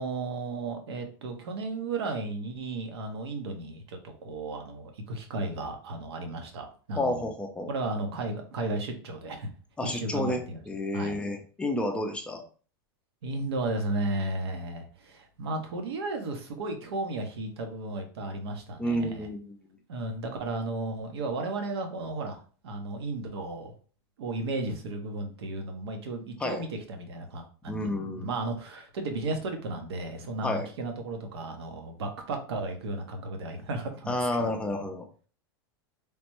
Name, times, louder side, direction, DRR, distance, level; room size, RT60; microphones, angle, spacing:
voice 1, 0.0-7.3 7.7-9.5 9.8-10.6 10.9-11.2 13.2-19.3 19.9-23.7 24.2-34.8, right 2 dB, 90° right, 4 dB, 0.8 m, -34 dB
voice 2, 6.9-7.7 9.8-12.4 18.8-19.6 26.4-26.6 27.7-28.3 30.4-30.7 34.1-35.1, left 1 dB, 10° left, 4 dB, 0.4 m, -30 dB
3.3 x 2.1 x 3.0 m, 0.39 s
supercardioid pair, 140°, 13 cm